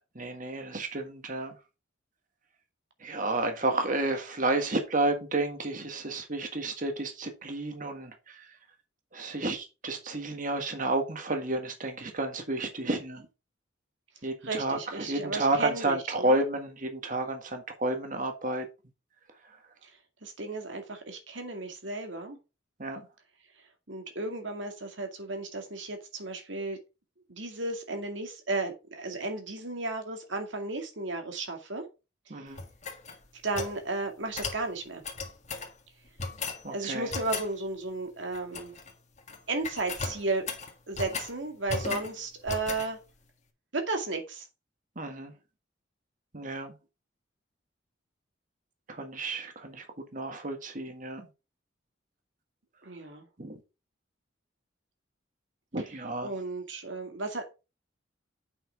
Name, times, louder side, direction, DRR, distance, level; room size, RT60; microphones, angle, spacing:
voice 1, 0.1-1.5 3.0-8.5 9.1-13.3 14.2-18.6 22.8-23.0 32.3-32.6 36.6-37.1 44.9-45.3 46.3-46.7 48.9-49.9 50.1-51.2 53.4-53.6 55.7-56.3, right 2 dB, 45° right, 1.6 m, -31 dB
voice 2, 14.4-16.4 19.8-19.9 20.2-22.4 23.9-26.8 27.3-31.8 33.4-35.0 36.7-38.7 39.5-40.5 40.9-43.0 43.7-44.5 52.8-53.3 56.2-57.5, right 3 dB, 75° right, 2.2 m, -34 dB
sound 1, 32.5-33.8 34.3-34.6 35.0-35.7 36.2-36.6 37.1-37.5 38.3-38.9 39.2-39.4 39.6-41.3 41.7-42.1 42.5-42.9, left 4 dB, 40° left, 1.7 m, -36 dB
8.0 x 6.0 x 4.5 m
head